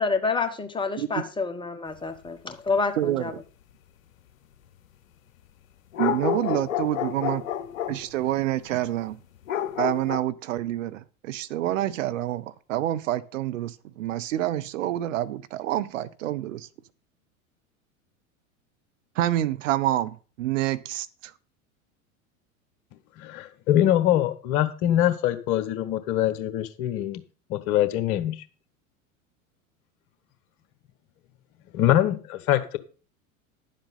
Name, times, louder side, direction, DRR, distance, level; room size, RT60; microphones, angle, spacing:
voice 1, 0.0-3.3, left 4 dB, 10° left, 1.6 m, -28 dB
voice 2, 3.0-3.3 6.0-7.5 7.9-9.2 9.8-16.7 19.2-21.3, right 13 dB, 65° right, 0.8 m, -27 dB
sound 1, 5.9-8.1 9.5-10.2, left 10 dB, 70° left, 0.8 m, -29 dB
voice 3, 23.2-27.2 27.5-28.4 31.7-32.8, left 12 dB, 50° left, 1.3 m, -23 dB
11.0 x 7.5 x 5.5 m
figure-of-eight pair, 85°, 42 cm